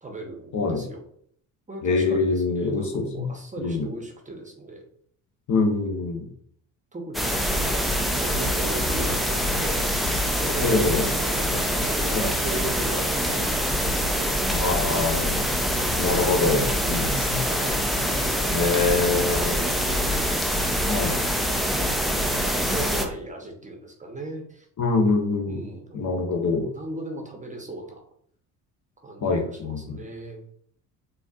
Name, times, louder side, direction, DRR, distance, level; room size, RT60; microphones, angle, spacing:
voice 1, 0.0-1.0 1.7-4.9 6.9-7.9 8.2-10.0 10.4-15.9 17.4-17.8 18.6-21.0 22.5-24.7 25.5-26.0 26.5-28.0 29.0-30.4, right 2 dB, 15° right, 2 dB, 0.9 m, -38 dB
voice 2, 0.5-0.9 1.8-3.3 3.6-3.9 5.5-6.2 10.6-11.1 12.1-12.3 14.5-15.4 16.0-17.5 18.5-19.6 20.9-21.2 24.8-25.7 25.9-26.7 29.2-30.0, left 3 dB, 40° left, 2 dB, 0.8 m, -24 dB
sound 1, 7.1-23.1, equal, ahead, 0.4 m, -25 dB
4.0 x 2.5 x 2.4 m, 0.63 s
hypercardioid pair, 55°, 46 cm